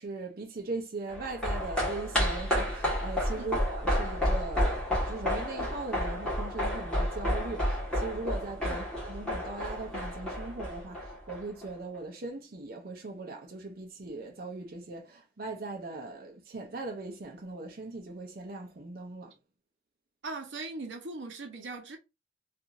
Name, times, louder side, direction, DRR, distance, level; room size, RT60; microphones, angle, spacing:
voice 1, 0.0-19.3, right 3 dB, 55° right, 0.6 m, -39 dB
sound 1, 1.1-11.7 11.9-12.0, equal, 5° left, 1.4 m, -31 dB
voice 2, 20.2-22.0, right 3 dB, 90° right, 0.8 m, -39 dB
2.8 x 2.4 x 2.5 m
head